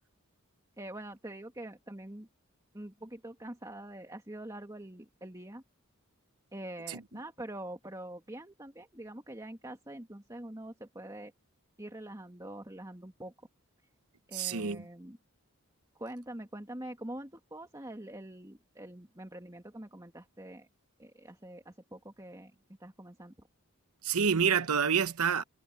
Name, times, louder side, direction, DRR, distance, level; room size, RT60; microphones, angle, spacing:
voice 1, 0.8-2.3 2.7-5.6 6.5-11.3 11.8-13.3 14.3-15.2 16.0-20.7 21.0-22.5 22.8-23.3, right 1 dB, 15° right, 2.3 m, -44 dB
voice 2, 14.3-14.8 24.0-25.4, right 6 dB, 90° right, 0.9 m, -28 dB
head